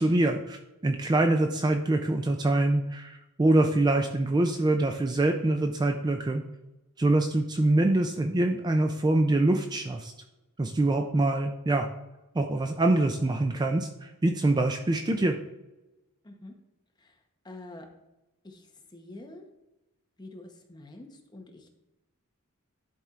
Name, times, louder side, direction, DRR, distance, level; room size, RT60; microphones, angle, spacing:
voice 1, 0.0-6.4 7.0-10.1 10.6-11.9 12.3-15.4, right 2 dB, 20° right, 4 dB, 0.3 m, -25 dB
voice 2, 17.4-17.9 18.4-18.6 18.9-19.4 20.2-21.7, left 2 dB, 20° left, 3 dB, 0.8 m, -46 dB
11.0 x 4.3 x 2.4 m, 1.0 s
head